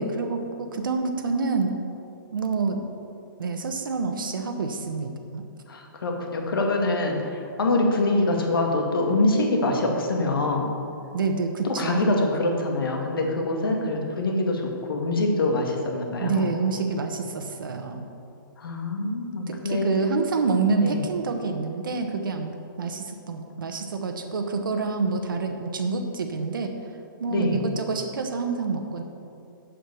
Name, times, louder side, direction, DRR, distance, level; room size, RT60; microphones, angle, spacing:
voice 1, 0.0-1.7 2.3-2.8 3.4-5.4 11.1-12.1 16.2-18.1 19.5-26.7 27.2-29.0, right 4 dB, 70° right, 5 dB, 1.1 m, -27 dB
voice 2, 5.7-10.8 11.6-16.5 18.6-19.9 20.8-21.0 27.3-27.7, left 2 dB, 80° left, 1 dB, 2.1 m, -25 dB
8.0 x 7.6 x 6.9 m, 2.6 s
hypercardioid pair, 180°, 12 cm